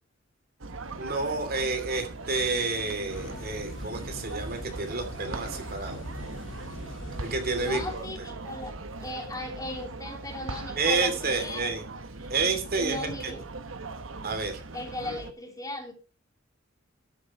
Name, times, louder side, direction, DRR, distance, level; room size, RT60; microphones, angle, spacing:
sound 1, 0.6-15.3, right 3 dB, 85° right, 1.2 m, -40 dB
voice 1, 1.0-6.0 7.2-8.1 10.8-11.8 12.3-13.3 14.2-14.6, right 3 dB, 50° right, 7 dB, 2.9 m, -29 dB
sound 2, 3.1-8.0, left 1 dB, 70° left, 2.8 m, -41 dB
voice 2, 7.6-11.7 12.2-12.3 12.8-13.4 14.7-15.9, left 2 dB, 20° left, 3 dB, 3.2 m, -37 dB
13.5 x 7.8 x 4.7 m, 0.33 s
head